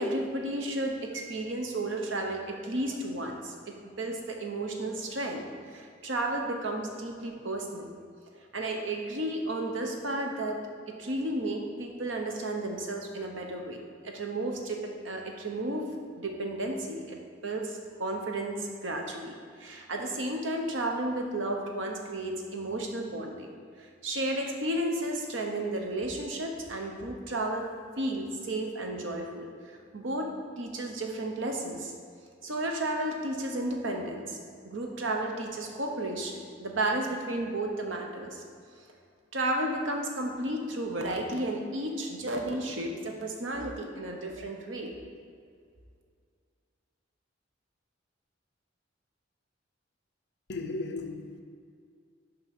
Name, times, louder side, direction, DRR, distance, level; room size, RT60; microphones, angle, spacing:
voice 1, 0.0-8.1 8.5-10.6 11.0-15.8 16.2-23.5 24.0-27.6 28.0-29.5 29.9-31.9 32.4-34.4 34.6-38.4 39.3-44.9, right 1 dB, 85° right, 2 dB, 1.0 m, -33 dB
voice 2, 50.5-51.4, left 3 dB, 60° left, 6 dB, 0.6 m, -35 dB
5.9 x 5.3 x 5.3 m, 2.2 s
head